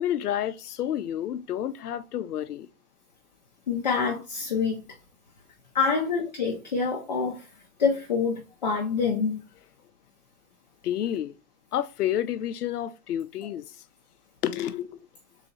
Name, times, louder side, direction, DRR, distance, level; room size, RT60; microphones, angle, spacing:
voice 1, 0.0-2.7 10.8-11.4 11.7-13.8 14.4-15.1, left 11 dB, 85° left, 0.6 m, -30 dB
voice 2, 3.7-4.8 5.7-7.5 7.8-9.4, left 5 dB, 30° left, 0.5 m, -26 dB
3.9 x 2.8 x 4.1 m
hypercardioid pair, 170°, 45 cm